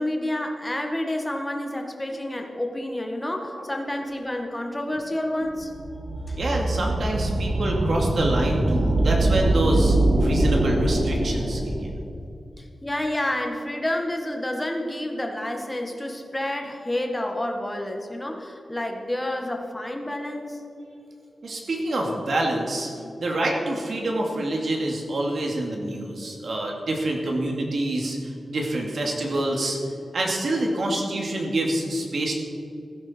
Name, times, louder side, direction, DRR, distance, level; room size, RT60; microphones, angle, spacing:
voice 1, 0.0-5.7 6.3-6.4 12.6-20.6, left 1 dB, 10° left, 2 dB, 1.5 m, -29 dB
sound 1, 5.5-12.0, right 1 dB, 80° right, 2.8 m, -23 dB
voice 2, 6.4-11.9 21.4-22.9 23.2-28.2 28.5-29.8 30.1-32.3, right 1 dB, 60° right, 0 dB, 2.4 m, -26 dB
15.5 x 14.0 x 4.5 m, 2.6 s
wide cardioid pair, 170°, 0 cm